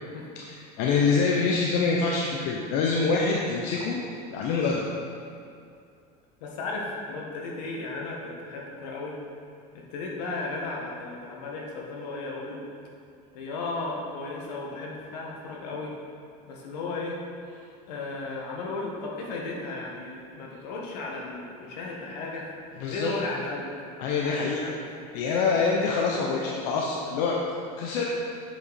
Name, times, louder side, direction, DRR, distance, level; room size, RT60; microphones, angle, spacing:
voice 1, 0.4-4.0 4.3-4.8 22.8-23.1 24.0-24.6 25.1-27.4 27.8-28.1, left 4 dB, 65° left, -2 dB, 0.8 m, -25 dB
voice 2, 6.4-9.1 9.9-12.6 13.3-15.9 16.5-17.2 17.9-22.5 22.8-23.7 24.2-24.8, left 3 dB, 85° left, -2 dB, 1.6 m, -35 dB
8.0 x 5.2 x 4.2 m, 2.4 s
supercardioid pair, 140°, 21 cm